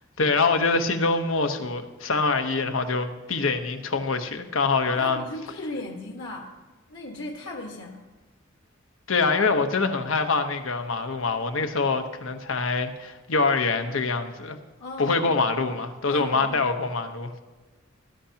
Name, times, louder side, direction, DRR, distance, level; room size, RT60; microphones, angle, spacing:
voice 1, 0.2-5.2 9.1-14.6 15.0-17.3, left 4 dB, 90° left, 7 dB, 1.1 m, -25 dB
voice 2, 4.9-6.6 6.9-8.1 14.8-15.3 16.1-16.6, left 2 dB, 65° left, -1 dB, 1.5 m, -36 dB
18.5 x 11.5 x 2.9 m, 1.2 s
head